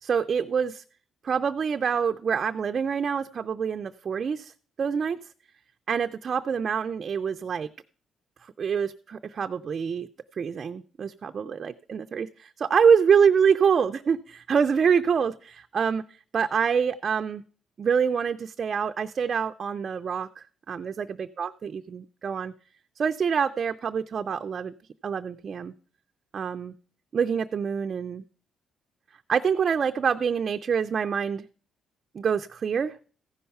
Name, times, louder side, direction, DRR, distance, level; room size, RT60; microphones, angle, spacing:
voice 1, 0.0-0.8 1.2-4.5 4.8-5.2 5.9-7.7 8.6-10.1 10.4-16.0 16.3-17.4 17.8-22.5 23.0-24.7 25.0-25.7 26.3-26.7 27.1-28.2 29.3-31.4 32.1-32.9, right 6 dB, 50° right, 7 dB, 0.4 m, -26 dB
14.5 x 5.6 x 5.4 m, 0.42 s
cardioid pair, 90°, 0 cm